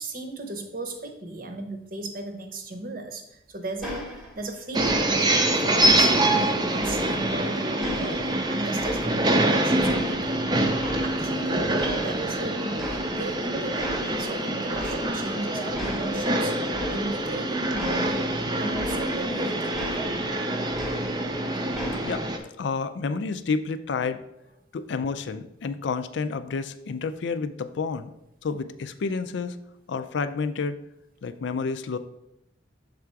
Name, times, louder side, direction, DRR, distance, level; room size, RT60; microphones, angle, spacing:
voice 1, 0.0-10.8 11.0-11.7 12.0-16.6 16.9-18.3 18.6-19.7 20.0-20.2 21.5-21.8, right 2 dB, 50° right, 5 dB, 0.8 m, -36 dB
sound 1, 3.8-4.5 4.8-5.4 5.8-7.4 7.8-9.5 9.8-11.4 11.8-12.5 12.8-13.4 13.8-14.3 14.7-15.4 15.7-19.4 19.7-21.4 21.7-22.4, left 1 dB, ahead, 0.9 m, -37 dB
sound 2, 4.7-22.4, right 1 dB, 20° right, 0.5 m, -25 dB
voice 2, 22.6-24.2 24.7-28.1 28.4-29.6 29.9-30.8 31.2-32.0, left 4 dB, 70° left, 11 dB, 0.4 m, -29 dB
6.6 x 3.6 x 4.6 m, 0.83 s
head